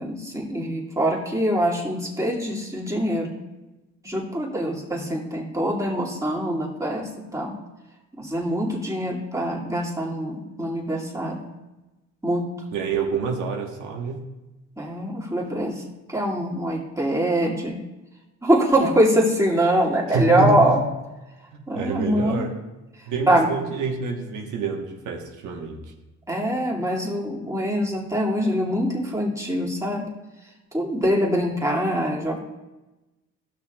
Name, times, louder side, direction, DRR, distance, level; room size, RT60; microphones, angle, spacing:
voice 1, 0.0-3.4 4.0-7.6 8.2-11.4 12.2-12.5 14.8-15.8 16.1-17.8 18.4-20.8 21.7-22.5 23.3-23.5 26.3-30.1 30.7-32.4, equal, 10° right, -3 dB, 2.1 m, -23 dB
voice 2, 12.7-14.2 20.1-20.8 21.7-22.5 23.1-25.8, right 5 dB, 80° right, 1 dB, 1.2 m, -27 dB
16.0 x 6.1 x 2.3 m, 1.1 s
cardioid pair, 90°, 30 cm